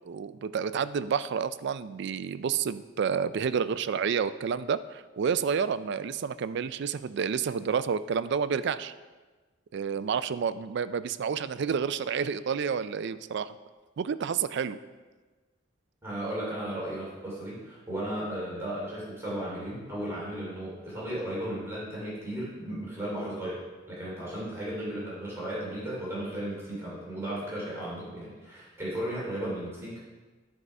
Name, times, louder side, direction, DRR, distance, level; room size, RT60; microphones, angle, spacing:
voice 1, 0.0-8.9 9.7-13.5 14.0-14.8, right 6 dB, 60° right, 14 dB, 0.4 m, -29 dB
voice 2, 16.0-30.1, right 1 dB, 15° right, -7 dB, 2.8 m, -35 dB
10.0 x 4.8 x 5.4 m, 1.3 s
head